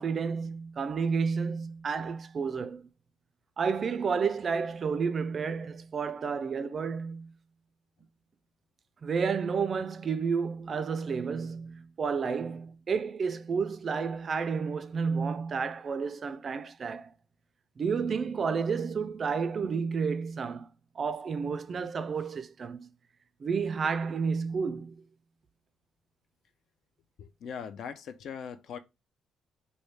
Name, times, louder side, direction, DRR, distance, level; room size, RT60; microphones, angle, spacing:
voice 1, 0.0-2.8 3.6-7.3 9.0-17.1 17.8-20.7 21.0-22.9 23.4-25.0, right 5 dB, 35° right, 0.3 m, -31 dB
voice 2, 27.2-28.8, left 7 dB, 60° left, 0.4 m, -40 dB
3.1 x 2.7 x 3.2 m
cardioid pair, 130°, 0 cm